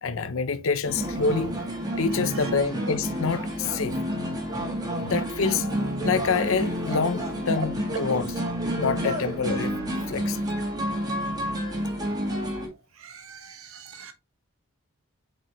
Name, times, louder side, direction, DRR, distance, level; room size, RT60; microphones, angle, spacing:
voice 1, 0.0-1.6 2.0-4.0 5.0-5.7 6.0-8.3 8.8-9.8 10.1-10.4, left 5 dB, 65° left, 0.7 m, -26 dB
sound 1, 0.8-12.7, equal, 15° right, 2.1 m, -29 dB
voice 2, 13.0-14.1, right 7 dB, 70° right, 1.5 m, -45 dB
7.4 x 5.1 x 3.1 m
head